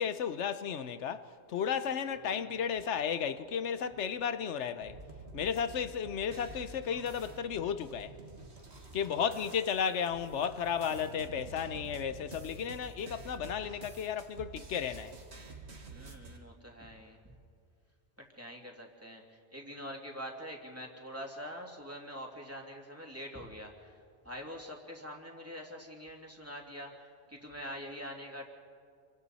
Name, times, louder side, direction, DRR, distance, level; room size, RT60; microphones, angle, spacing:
voice 1, 0.0-5.0 5.3-8.1 8.9-15.1, left 7 dB, 85° left, 1.1 m, -34 dB
voice 2, 2.1-2.7 9.3-9.5 15.9-17.2 18.2-24.0 24.2-28.5, equal, 10° right, 2.6 m, -45 dB
sound 1, 4.8-16.4, right 3 dB, 70° right, 2.2 m, -49 dB
29.0 x 24.5 x 4.2 m
omnidirectional pair, 1.2 m